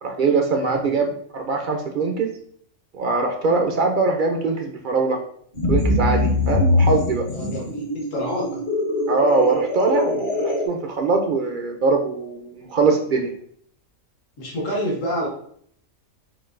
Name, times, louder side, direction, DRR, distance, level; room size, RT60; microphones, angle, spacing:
voice 1, 0.0-2.3 2.9-5.2 5.7-7.3 9.1-13.3, right 4 dB, 65° right, 2 dB, 0.5 m, -22 dB
sound 1, 5.6-10.7, left 2 dB, 50° left, 1.0 m, -22 dB
voice 2, 7.3-8.6 14.4-15.3, equal, 70° left, -3 dB, 1.4 m, -28 dB
5.8 x 2.6 x 2.5 m, 0.63 s
omnidirectional pair, 1.4 m